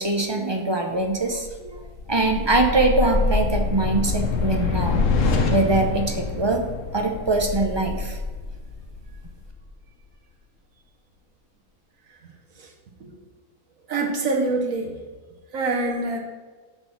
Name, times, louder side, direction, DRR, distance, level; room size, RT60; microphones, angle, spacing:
voice 1, 0.0-1.8 2.1-5.0 5.5-6.6 6.9-8.2, right 2 dB, 35° right, 3 dB, 0.4 m, -23 dB
sound 1, 1.3-9.7, left 4 dB, 65° left, 1.1 m, -26 dB
voice 2, 12.2-12.7 13.0-13.1 13.9-14.9 15.5-16.2, right 3 dB, 70° right, 1 dB, 1.6 m, -26 dB
7.0 x 5.3 x 5.9 m, 1.4 s
omnidirectional pair, 1.5 m